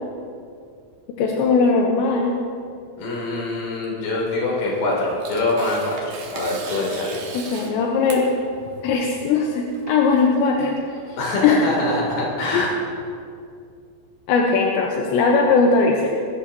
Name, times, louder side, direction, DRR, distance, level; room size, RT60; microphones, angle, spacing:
voice 1, 1.2-2.3 7.3-8.3 8.8-10.8 11.4-11.7 12.5-12.7 14.3-16.1, left 4 dB, 80° left, 0 dB, 3.2 m, -19 dB
voice 2, 3.0-7.2 11.2-12.8, left 2 dB, 55° left, -3 dB, 4.5 m, -24 dB
Tearing, 4.6-11.3, right 3 dB, 60° right, 2.7 m, -37 dB
21.5 x 14.0 x 2.9 m, 2.3 s
omnidirectional pair, 5.3 m